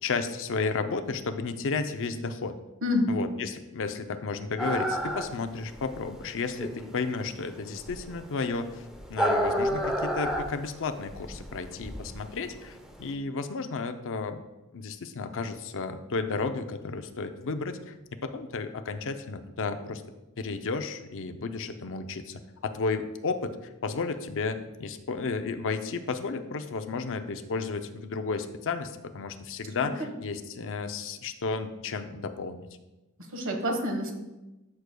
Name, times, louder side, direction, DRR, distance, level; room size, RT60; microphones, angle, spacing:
voice 1, 0.0-2.6 3.1-8.8 9.1-14.4 14.7-17.9 18.2-20.0 20.4-23.6 23.8-32.7, left 4 dB, 60° left, 8 dB, 0.6 m, -33 dB
voice 2, 2.8-3.1 29.8-30.1 33.3-34.1, left 1 dB, 60° right, 3 dB, 1.4 m, -28 dB
sound 1, 4.6-13.1, equal, 5° right, 0.7 m, -30 dB
13.0 x 6.4 x 2.3 m, 1.0 s
head